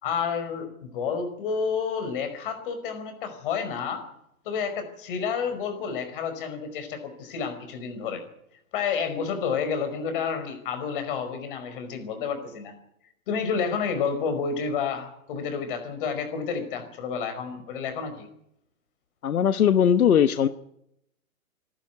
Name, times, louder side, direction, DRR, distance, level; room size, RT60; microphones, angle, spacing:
voice 1, 0.0-4.0 4.5-8.2 8.7-12.8 13.3-18.3, left 6 dB, 40° left, 8 dB, 5.2 m, -30 dB
voice 2, 19.2-20.5, left 8 dB, 80° left, 11 dB, 1.2 m, -19 dB
26.0 x 12.0 x 9.5 m, 0.77 s
hypercardioid pair, 165°, 42 cm